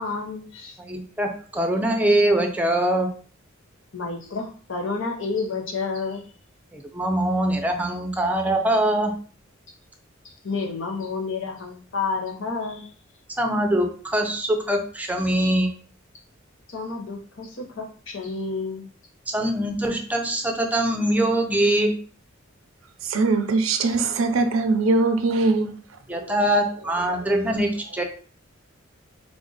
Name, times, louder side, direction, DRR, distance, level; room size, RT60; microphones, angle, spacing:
voice 1, 0.0-0.8 3.9-6.2 10.2-12.9 16.7-18.9, left 4 dB, 65° left, 0.9 m, -30 dB
voice 2, 0.8-3.1 6.7-9.1 13.4-15.7 19.3-21.9 26.1-28.0, right 1 dB, 10° right, 0.6 m, -23 dB
voice 3, 23.0-25.7 27.1-27.3, right 3 dB, 85° right, 0.5 m, -21 dB
3.6 x 2.5 x 3.9 m
head